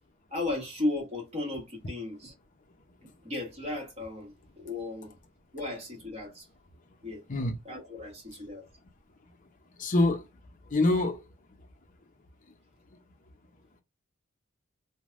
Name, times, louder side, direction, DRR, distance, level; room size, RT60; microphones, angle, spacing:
voice 1, 0.3-2.3 3.2-5.1 5.5-6.5 7.0-7.2 7.6-8.6, left 2 dB, 35° right, 1.3 m, -35 dB
voice 2, 9.8-10.2 10.7-11.2, left 2 dB, 40° left, 0.6 m, -25 dB
3.2 x 2.2 x 2.5 m
head